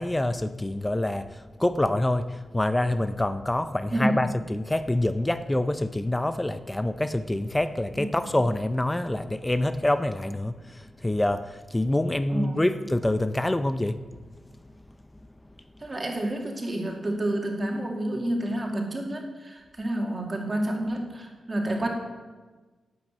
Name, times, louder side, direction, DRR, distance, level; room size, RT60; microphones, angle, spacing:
voice 1, 0.0-14.0, left 1 dB, 10° left, 12 dB, 0.5 m, -26 dB
voice 2, 3.9-4.2 8.0-8.3 12.3-12.7 15.8-21.9, right 1 dB, 25° right, 1 dB, 2.2 m, -29 dB
11.0 x 8.9 x 8.8 m, 1.3 s
wide cardioid pair, 170°, 0 cm